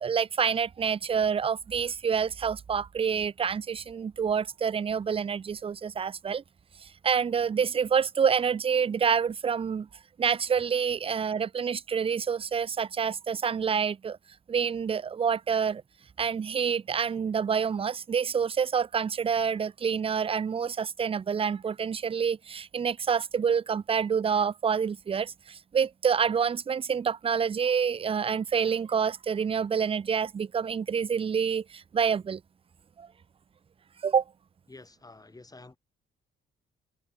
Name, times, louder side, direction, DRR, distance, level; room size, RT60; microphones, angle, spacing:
voice 1, 0.0-6.4 6.8-9.9 10.2-14.2 14.5-15.8 16.2-32.4 33.0-33.1 34.0-34.2, right 7 dB, 30° right, 0.5 m, -27 dB
voice 2, 34.7-35.8, left 3 dB, 20° left, 5.5 m, -49 dB
cardioid pair, 90°, 20 cm